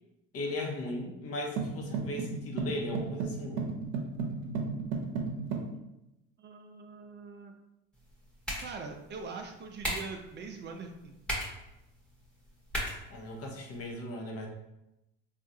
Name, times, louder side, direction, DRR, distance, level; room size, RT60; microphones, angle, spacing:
voice 1, 0.3-3.6 13.1-14.5, left 1 dB, 50° left, 0 dB, 0.8 m, -37 dB
sound 1, 1.6-5.7, right 4 dB, 85° right, 0.6 m, -34 dB
voice 2, 6.4-7.5 8.6-11.1, right 4 dB, 40° right, 4 dB, 0.4 m, -43 dB
sound 2, 7.9-13.9, equal, 5° left, 0.9 m, -40 dB
3.5 x 2.4 x 2.6 m, 0.91 s
supercardioid pair, 100°, 30 cm